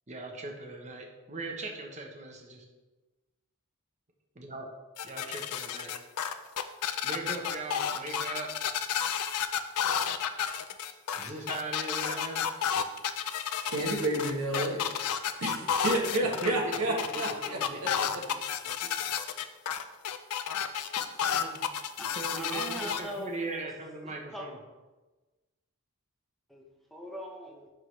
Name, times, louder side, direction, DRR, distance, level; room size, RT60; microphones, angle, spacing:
voice 1, 0.1-2.6 4.3-4.7 5.0-5.9 6.2-6.3 7.0-8.5 11.1-12.4 16.2-18.1 22.1-24.6, right 3 dB, 30° right, 1.0 m, -39 dB
sound 1, 5.0-23.0, left 8 dB, 85° left, 0.5 m, -31 dB
voice 2, 13.6-18.2 21.3-21.6, right 1 dB, 70° right, 1.2 m, -31 dB
voice 3, 22.3-23.3 23.6-23.7 24.0-24.5 26.5-27.7, equal, ahead, 0.7 m, -41 dB
11.0 x 3.7 x 3.2 m
head